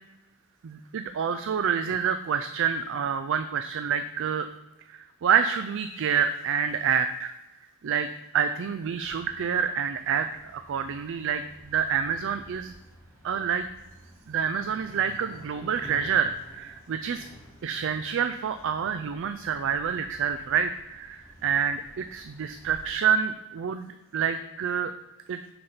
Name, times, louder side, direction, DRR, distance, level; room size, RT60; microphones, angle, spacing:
voice 1, 0.6-4.5 4.9-7.3 7.8-8.1 8.3-12.7 13.2-13.7 14.3-17.3 17.6-24.9 25.3-25.4, right 7 dB, 55° right, 9 dB, 0.4 m, -27 dB
sound 1, 9.0-22.8, right 1 dB, 10° left, 2.2 m, -51 dB
6.9 x 5.1 x 5.6 m, 1.0 s
head